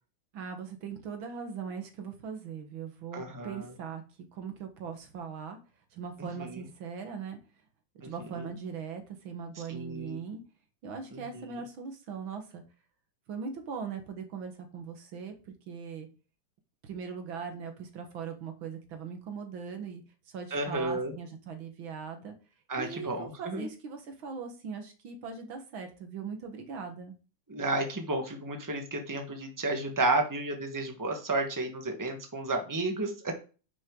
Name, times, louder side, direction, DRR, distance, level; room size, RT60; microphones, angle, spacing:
voice 1, 0.3-4.0 4.3-5.6 5.9-7.4 8.0-10.4 10.8-12.6 13.3-16.1 16.8-22.3 22.8-27.2, right 6 dB, 85° right, 5 dB, 2.3 m, -40 dB
voice 2, 3.1-3.7 6.4-6.6 8.0-8.1 9.7-10.2 11.1-11.6 20.5-21.1 22.7-23.7 27.5-33.4, right 2 dB, 10° right, 3 dB, 1.3 m, -32 dB
10.0 x 6.3 x 3.8 m, 0.36 s
omnidirectional pair, 2.1 m